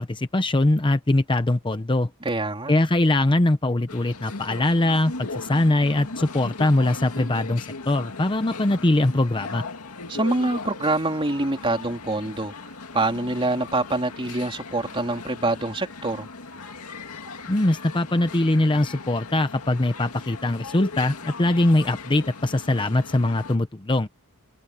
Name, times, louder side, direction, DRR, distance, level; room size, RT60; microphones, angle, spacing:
voice 1, 0.0-2.1 2.7-9.7 17.5-24.1, left 1 dB, 20° left, 0.8 m, -22 dB
voice 2, 2.2-2.7 10.1-12.5 12.9-16.3, right 2 dB, 25° right, 3.5 m, -25 dB
sound 1, 3.9-23.6, left 3 dB, 80° left, 2.3 m, -38 dB
head